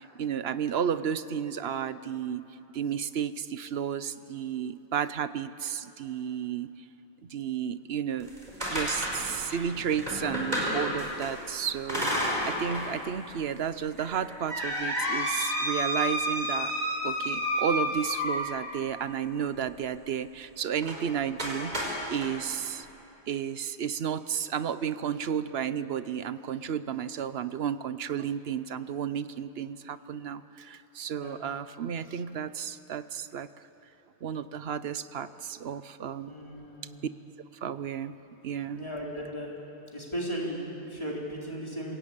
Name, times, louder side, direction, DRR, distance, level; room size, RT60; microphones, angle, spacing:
voice 1, 0.0-2.4 2.7-6.7 7.2-8.3 8.7-16.7 17.0-21.8 22.1-22.9 23.3-33.5 34.2-36.3 37.6-38.1 38.4-38.8, right 8 dB, 65° right, 13 dB, 1.0 m, -32 dB
sound 1, 8.2-11.3 11.9-12.9 13.3-13.4 14.0-18.6 20.8-21.0 21.4-22.3, equal, 40° right, 5.4 m, -30 dB
voice 2, 36.2-37.0 38.7-39.5 39.9-42.0, equal, 25° left, -3 dB, 4.1 m, -36 dB
27.0 x 17.0 x 8.8 m, 3.0 s
omnidirectional pair, 1.1 m